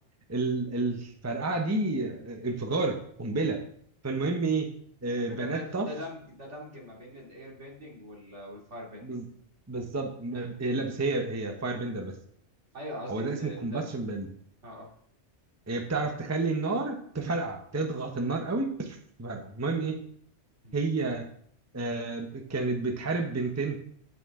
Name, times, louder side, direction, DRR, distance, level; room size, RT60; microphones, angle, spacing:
voice 1, 0.3-3.6 4.0-4.7 5.0-5.9 9.0-9.2 9.7-12.2 13.1-14.3 15.7-20.0 20.7-21.3 21.7-23.8, right 3 dB, 15° right, 4 dB, 0.8 m, -30 dB
voice 2, 5.2-9.2 12.7-13.9 14.6-14.9 20.6-20.8, left 1 dB, 70° right, -2 dB, 2.8 m, -42 dB
9.1 x 8.9 x 3.7 m, 0.63 s
omnidirectional pair, 1.2 m